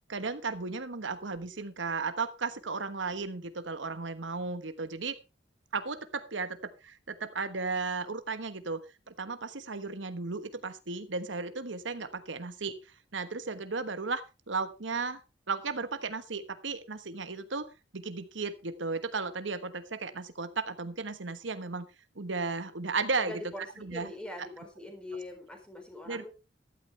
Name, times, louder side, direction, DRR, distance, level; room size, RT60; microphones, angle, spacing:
voice 1, 0.1-5.2 5.7-8.8 9.1-12.8 13.1-15.2 15.5-17.7 17.9-21.9 22.1-23.4 23.8-24.1 24.4-24.5 26.1-26.3, right 4 dB, 90° right, 11 dB, 1.2 m, -35 dB
voice 2, 23.2-26.3, left 1 dB, 5° left, 4 dB, 4.2 m, -42 dB
14.5 x 12.5 x 3.3 m, 0.28 s
head